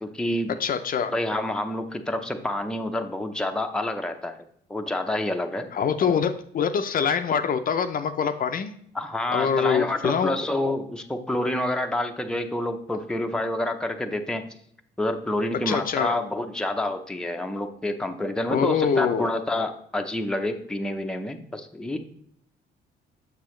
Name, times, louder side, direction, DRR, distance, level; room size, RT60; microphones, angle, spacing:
voice 1, 0.0-0.5 1.1-4.4 4.7-5.7 8.9-14.5 15.0-22.0, left 1 dB, 5° left, 4 dB, 0.6 m, -28 dB
voice 2, 0.6-1.1 5.7-8.7 9.3-10.4 15.7-16.2 18.5-19.3, left 7 dB, 50° left, 8 dB, 0.5 m, -24 dB
6.8 x 6.7 x 3.1 m, 0.66 s
cardioid pair, 105°, 19 cm